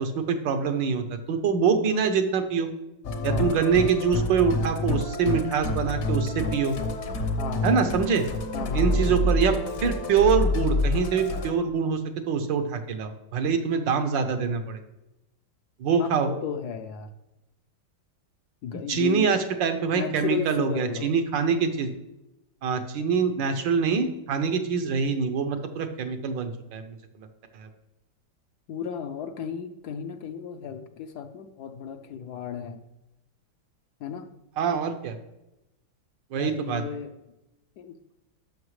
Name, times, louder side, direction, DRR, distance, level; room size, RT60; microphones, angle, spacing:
voice 1, 0.0-2.7 3.2-6.7 7.6-8.2 8.7-9.5 9.8-12.0 12.3-14.8 15.8-16.3 18.9-21.9 22.6-26.8 27.6-27.7 34.6-35.2 36.3-36.8, right 6 dB, 80° right, 7 dB, 1.5 m, -24 dB
Musical instrument, 3.0-11.5, left 1 dB, 50° left, 0.9 m, -27 dB
voice 2, 7.4-7.7 8.5-9.3 16.0-17.1 18.6-19.4 19.9-21.1 28.7-32.8 34.0-34.3 36.3-37.1 37.8-38.0, left 7 dB, 70° left, 7 dB, 1.1 m, -34 dB
12.0 x 5.6 x 3.2 m, 0.92 s
omnidirectional pair, 2.0 m